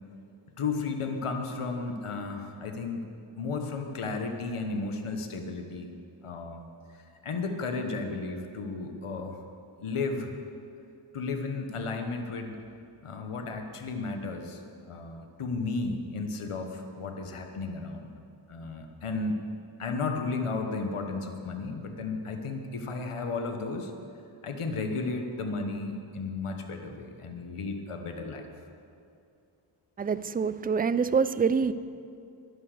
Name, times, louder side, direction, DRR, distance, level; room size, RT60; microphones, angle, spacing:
voice 1, 0.6-3.1 3.3-5.9 6.2-9.4 9.8-10.3 11.1-12.6 13.0-14.6 14.9-18.1 18.5-19.4 19.8-23.9 24.4-28.5, left 3 dB, 85° left, 5 dB, 1.2 m, -34 dB
voice 2, 30.0-31.7, right 5 dB, 20° right, 15 dB, 0.4 m, -26 dB
11.5 x 9.5 x 6.6 m, 2.5 s
cardioid pair, 45°, 50 cm